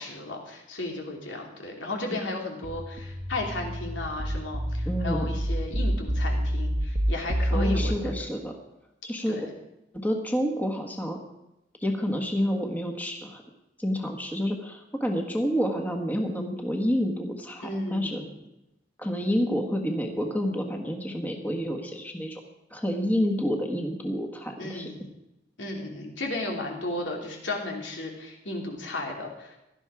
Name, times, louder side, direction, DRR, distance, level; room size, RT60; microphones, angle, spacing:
voice 1, 0.0-8.1 9.3-9.5 17.6-18.3 24.6-25.1 25.6-29.6, left 2 dB, 85° left, 1 dB, 3.1 m, -34 dB
sound 1, 2.6-8.0, equal, 50° right, 1.2 m, -28 dB
voice 2, 4.8-5.4 7.5-8.5 9.0-9.5 10.0-11.2 11.8-13.4 13.8-18.2 19.0-22.4 22.7-24.9, equal, 10° left, 2 dB, 1.5 m, -29 dB
17.0 x 12.0 x 4.9 m, 0.90 s
head